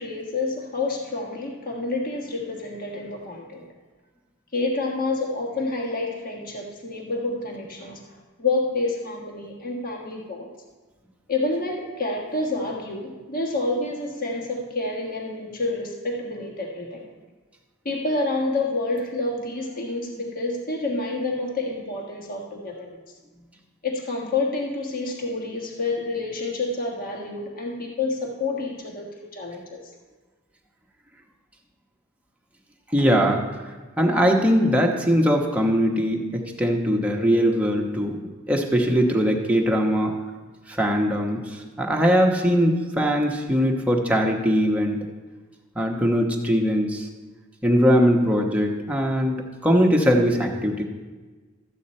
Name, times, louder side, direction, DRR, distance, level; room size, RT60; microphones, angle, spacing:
voice 1, 0.0-3.7 4.5-8.0 8.4-10.5 11.3-17.0 17.8-23.0 23.8-29.8, left 2 dB, 40° left, -1 dB, 1.4 m, -28 dB
voice 2, 32.9-33.4 34.0-38.2 38.5-40.1 40.7-45.1 45.7-47.1 47.6-50.8, equal, 5° right, 0 dB, 1.0 m, -21 dB
13.5 x 8.4 x 4.3 m, 1.3 s
head